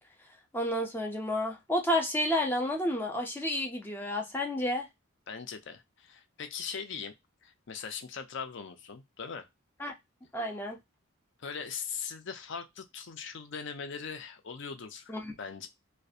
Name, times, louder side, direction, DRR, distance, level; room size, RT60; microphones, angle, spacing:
voice 1, 0.5-4.9 9.8-9.9 10.3-10.8 15.1-15.3, left 1 dB, 10° left, 0.5 m, -30 dB
voice 2, 5.3-7.1 7.4-9.4 11.4-15.7, left 6 dB, 60° left, 0.5 m, -40 dB
2.6 x 2.2 x 2.3 m
head